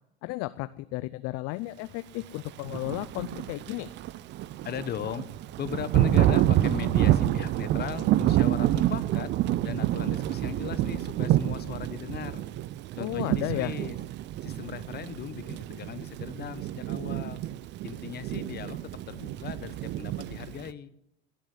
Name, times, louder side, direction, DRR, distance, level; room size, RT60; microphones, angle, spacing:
voice 1, 0.2-3.9 13.0-13.7, left 19 dB, 40° left, 15 dB, 0.5 m, -33 dB
Thunder / Rain, 2.6-20.7, right 13 dB, 30° right, 0.4 m, -28 dB
voice 2, 4.6-5.3 5.6-9.3 9.6-12.4 13.0-14.0 14.4-17.4 17.8-20.9, left 9 dB, 25° left, 14 dB, 0.9 m, -38 dB
16.5 x 7.4 x 9.3 m, 0.83 s
hypercardioid pair, 110°, 38 cm